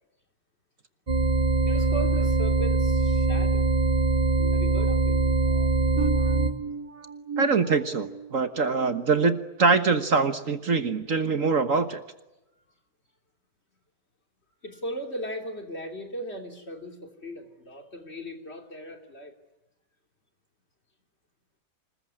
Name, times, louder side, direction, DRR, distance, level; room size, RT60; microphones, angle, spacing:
sound 1, 1.1-6.5, right 3 dB, 25° right, 2.4 m, -23 dB
voice 1, 1.6-3.7 4.5-5.2 14.6-19.3, equal, 40° left, 4 dB, 3.4 m, -37 dB
sound 2, 4.4-10.0 10.5-10.8 11.3-11.5, right 4 dB, 80° right, 2.2 m, -38 dB
voice 2, 7.4-12.0, right 4 dB, 55° right, 9 dB, 1.7 m, -24 dB
27.0 x 21.0 x 9.8 m, 0.99 s
omnidirectional pair, 1.7 m